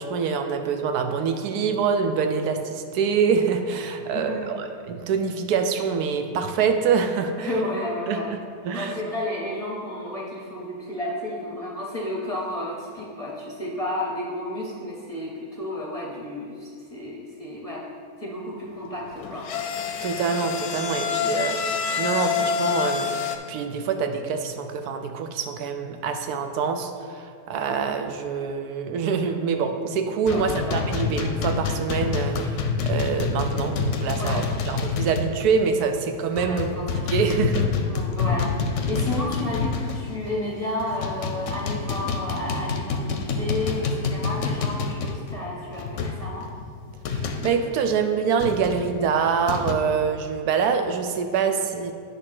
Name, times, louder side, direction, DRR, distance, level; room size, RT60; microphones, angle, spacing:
voice 1, 0.0-7.5 8.1-8.4 8.6-8.9 20.0-23.1 23.5-36.8 37.1-37.7 47.1-52.0, right 6 dB, 80° right, 6 dB, 1.1 m, -25 dB
voice 2, 4.1-4.5 7.4-8.3 8.7-17.8 18.2-19.5 30.3-30.8 34.1-34.4 36.3-37.4 37.8-46.5, left 1 dB, 35° left, -3 dB, 0.7 m, -32 dB
sound 1, 19.1-23.4, left 7 dB, 90° left, 1.2 m, -27 dB
sound 2, 30.3-35.5 35.8-35.9 36.4-40.3 40.8-47.6 48.4-49.7, left 5 dB, 65° left, 0.8 m, -27 dB
8.6 x 3.4 x 5.9 m, 2.3 s
omnidirectional pair, 1.6 m